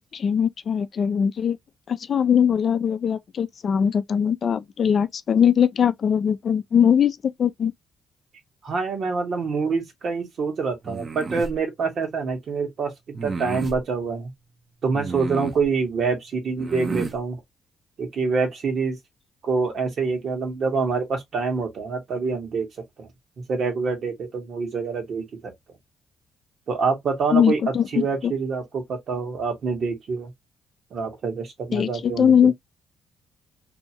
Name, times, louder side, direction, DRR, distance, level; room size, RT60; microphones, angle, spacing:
voice 1, 0.1-1.6 1.9-7.7 27.3-28.3 31.7-32.5, left 8 dB, 50° left, 0.4 m, -21 dB
voice 2, 8.6-14.3 14.8-17.4 18.0-19.0 19.4-22.7 23.0-23.1 23.5-25.5 26.7-30.3 30.9-32.5, right 4 dB, 55° right, 1.3 m, -26 dB
sound 1, 10.8-11.5 13.1-13.8 14.9-15.7 16.6-17.2, right 3 dB, 35° right, 0.7 m, -31 dB
2.7 x 2.3 x 2.8 m
cardioid pair, 90°, 0 cm